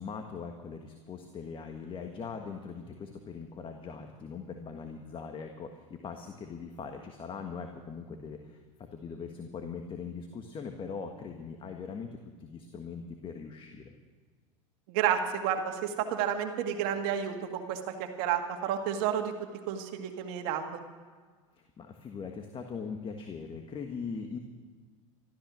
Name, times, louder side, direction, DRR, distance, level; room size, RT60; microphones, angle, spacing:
voice 1, 0.0-8.6 8.9-12.1 12.4-13.9 21.6-24.4, left 5 dB, 30° left, 5 dB, 1.4 m, -41 dB
voice 2, 14.9-17.8 18.2-19.3 19.7-20.6, right 9 dB, 65° right, 5 dB, 2.0 m, -30 dB
14.0 x 13.5 x 6.2 m, 1.5 s
hypercardioid pair, 100°, 17 cm